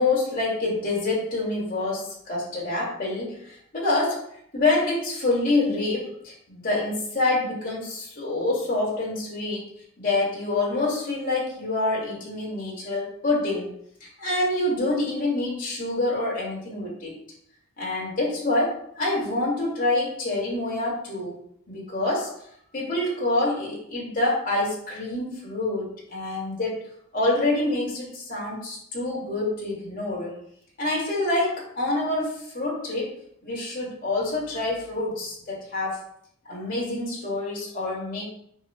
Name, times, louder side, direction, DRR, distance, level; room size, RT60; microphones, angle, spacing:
voice 1, 0.0-4.2 4.5-9.7 10.0-13.8 14.0-17.1 17.8-21.3 21.7-22.3 22.7-26.9 27.1-30.3 30.8-33.2 33.4-36.0 36.5-38.2, left 2 dB, 40° left, -3 dB, 2.3 m, -26 dB
8.7 x 6.0 x 2.2 m, 0.69 s
head